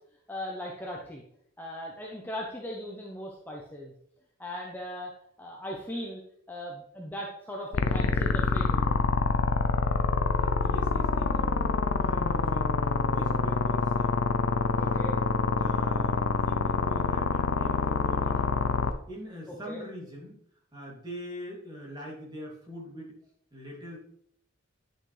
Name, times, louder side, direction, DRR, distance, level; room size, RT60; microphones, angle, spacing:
voice 1, 0.3-1.2 1.6-3.9 4.4-5.1 5.4-6.2 6.5-9.0 14.8-15.1 19.5-19.8, equal, 10° left, -2 dB, 0.9 m, -38 dB
sound 1, 7.7-18.9, left 4 dB, 70° left, 0.6 m, -26 dB
voice 2, 10.4-12.8 13.0-14.4 14.7-15.0 15.4-20.4 20.7-23.2 23.5-24.0, equal, 20° right, -4 dB, 2.7 m, -43 dB
10.0 x 6.4 x 3.3 m, 0.68 s
head